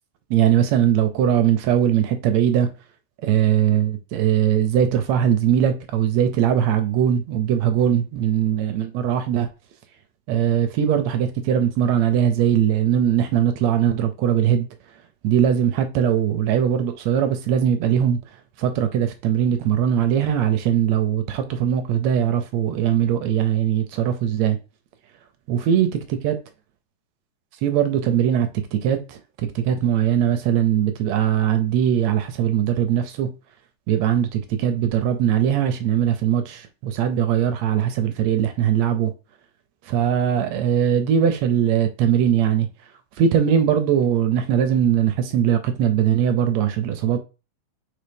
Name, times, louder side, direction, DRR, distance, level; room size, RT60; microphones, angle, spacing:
voice 1, 0.3-2.7 3.2-9.5 10.3-14.7 15.2-18.2 18.6-24.6 25.5-25.9 26.2-26.4 27.6-29.2 29.6-33.3 33.9-39.1 39.9-42.7 43.2-47.2, right 9 dB, 75° right, 1.7 m, -20 dB
4.6 x 4.3 x 5.1 m
omnidirectional pair, 3.6 m